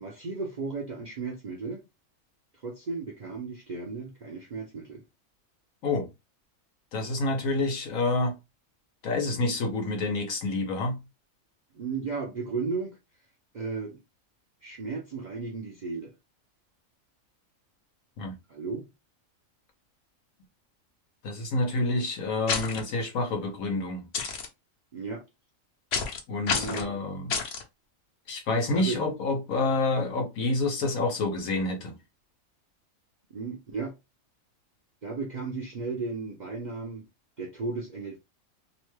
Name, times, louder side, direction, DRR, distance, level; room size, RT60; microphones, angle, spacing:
voice 1, 0.0-1.8 2.6-5.0 11.7-13.0 13.5-14.0 14.6-16.1 18.5-18.9 24.9-25.2 26.3-27.1 28.7-29.0 33.3-33.9 35.0-37.0 37.4-38.2, right 4 dB, 50° right, 0.5 m, -35 dB
voice 2, 6.9-8.3 9.0-11.0 18.2-18.3 21.2-24.0 26.3-27.3 28.3-32.0, left 2 dB, 90° left, 1.3 m, -28 dB
sound 1, 22.5-22.8 24.1-24.5 25.9-26.2 26.5-26.9 27.3-27.6, left 5 dB, 60° left, 0.9 m, -29 dB
2.9 x 2.2 x 3.1 m
omnidirectional pair, 1.4 m